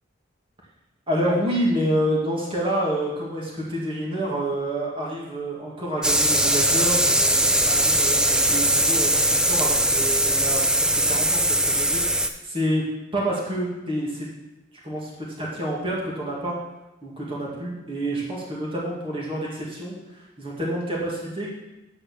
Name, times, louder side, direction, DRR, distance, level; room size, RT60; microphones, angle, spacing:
voice 1, 1.1-12.8 13.1-14.3 14.8-16.6 17.0-21.5, right 1 dB, 30° right, -5 dB, 2.0 m, -28 dB
sound 1, 6.0-12.3, right 1 dB, 5° right, 0.4 m, -20 dB
8.6 x 4.8 x 6.2 m, 1.0 s
head